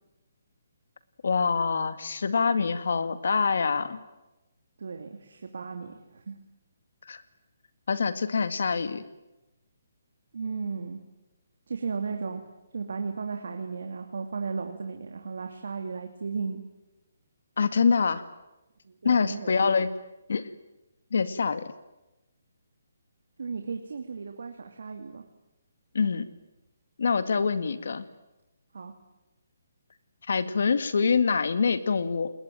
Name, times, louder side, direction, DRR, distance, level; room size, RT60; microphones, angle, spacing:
voice 1, 1.2-4.0 7.1-7.2 7.9-9.0 17.6-18.2 19.0-20.0 20.3-20.4 21.1-21.7 25.9-26.3 27.0-28.0 30.3-32.3, left 5 dB, 60° left, 12 dB, 2.1 m, -25 dB
voice 2, 4.8-6.3 10.3-11.0 11.7-12.4 12.7-16.6 18.9-19.8 23.4-25.2 27.4-27.5 28.7-28.9, right 5 dB, 65° right, 5 dB, 2.7 m, -35 dB
29.0 x 20.5 x 9.3 m, 1.0 s
hypercardioid pair, 175°, 0 cm